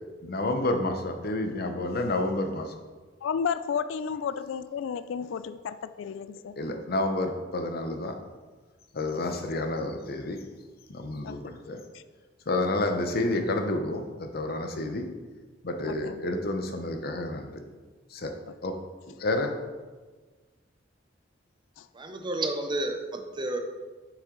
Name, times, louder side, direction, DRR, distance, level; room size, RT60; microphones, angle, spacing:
voice 1, 0.2-2.7 6.6-8.2 8.9-10.4 10.9-11.8 12.5-15.1 15.6-17.6 18.1-18.3 18.6-18.8 19.2-19.5, left 2 dB, 55° left, 6 dB, 0.8 m, -29 dB
voice 2, 3.2-6.6 9.1-9.4 11.2-11.4 11.9-12.0 15.8-16.2 18.5-18.6 21.8-21.9, left 6 dB, 85° left, 13 dB, 0.3 m, -33 dB
voice 3, 21.9-23.6, right 2 dB, 25° right, 4 dB, 0.7 m, -31 dB
6.6 x 6.3 x 3.8 m, 1.3 s
head